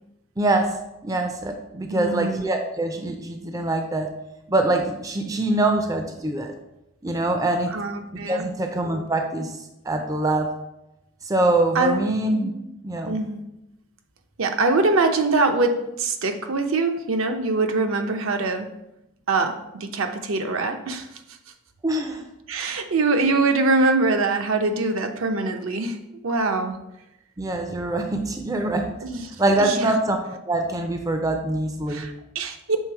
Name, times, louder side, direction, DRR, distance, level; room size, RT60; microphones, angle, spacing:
voice 1, 0.4-0.8 1.0-4.1 4.5-6.5 7.0-7.8 8.1-9.6 9.9-10.5 11.2-12.5 12.8-13.2 21.8-22.2 27.4-28.9 29.4-32.0, right 2 dB, 15° right, 4 dB, 0.4 m, -24 dB
voice 2, 1.9-2.4 7.7-8.4 11.7-12.0 13.1-13.4 14.4-18.7 19.3-21.2 22.5-26.0 26.2-26.8 29.0-29.3 29.6-29.9 31.9-32.8, right 3 dB, 70° right, 6 dB, 0.6 m, -23 dB
6.4 x 3.4 x 4.5 m, 0.89 s
head